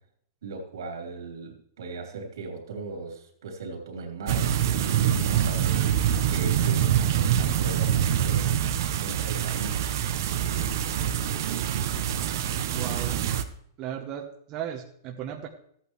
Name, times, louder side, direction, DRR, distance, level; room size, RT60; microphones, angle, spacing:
voice 1, 0.4-5.9 6.3-8.5 9.0-9.9, right 4 dB, 80° right, 2 dB, 3.1 m, -38 dB
sound 1, 4.3-13.4, right 9 dB, 60° right, 0.8 m, -25 dB
voice 2, 12.7-13.2 13.8-15.5, right 9 dB, 30° right, 1 dB, 1.0 m, -35 dB
14.5 x 8.5 x 3.2 m, 0.68 s
hypercardioid pair, 145°, 2 cm